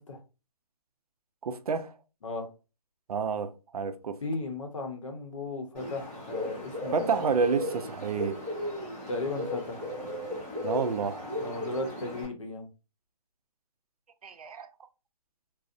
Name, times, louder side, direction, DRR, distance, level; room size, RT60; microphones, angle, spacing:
voice 1, 1.4-2.0 3.1-4.2 6.9-8.4 10.6-11.3 14.2-14.7, right 5 dB, 70° right, 0.4 m, -29 dB
voice 2, 4.2-7.1 9.1-9.9 11.4-12.7, left 2 dB, 55° left, 0.7 m, -35 dB
Bird, 5.7-12.2, left 1 dB, 5° right, 0.8 m, -36 dB
2.5 x 2.0 x 2.5 m
hypercardioid pair, 175°, 20 cm